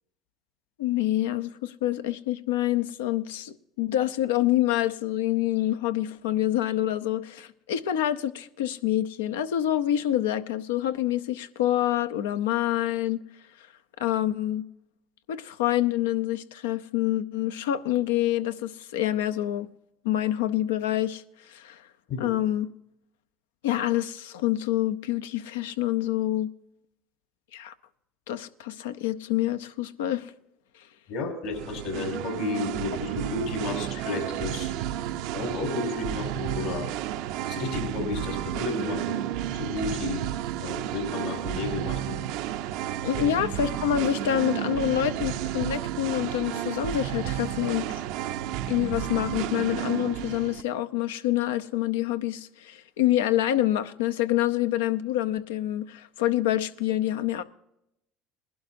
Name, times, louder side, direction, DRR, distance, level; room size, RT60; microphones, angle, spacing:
voice 1, 0.8-13.2 14.0-14.6 15.3-19.7 20.0-21.2 21.5-21.8 22.2-22.7 23.6-26.5 27.5-27.7 28.3-30.3 43.0-48.0 48.7-57.4, left 12 dB, 90° left, 0.6 m, -27 dB
voice 2, 31.1-35.1 35.3-36.9 37.5-39.2 39.5-40.2 40.6-42.2, left 3 dB, 70° left, 5.2 m, -32 dB
Singing, 31.5-50.6, right 11 dB, 75° right, 0.6 m, -32 dB
20.0 x 12.0 x 2.6 m
supercardioid pair, 85°, 0 cm